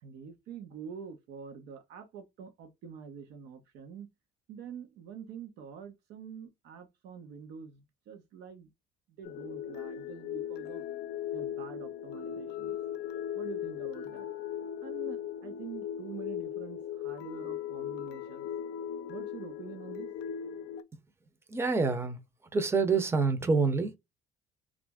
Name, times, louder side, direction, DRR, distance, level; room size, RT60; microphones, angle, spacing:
voice 1, 0.0-4.1 4.5-8.7 9.1-10.8 11.3-12.7 13.3-14.3 14.8-18.5 19.1-20.1, right 7 dB, 85° right, 0.8 m, -46 dB
sound 1, 9.2-20.8, left 10 dB, 75° left, 0.5 m, -38 dB
voice 2, 21.5-22.2 22.5-24.0, right 4 dB, 15° right, 0.6 m, -27 dB
3.0 x 2.5 x 3.4 m
cardioid pair, 110°, 17 cm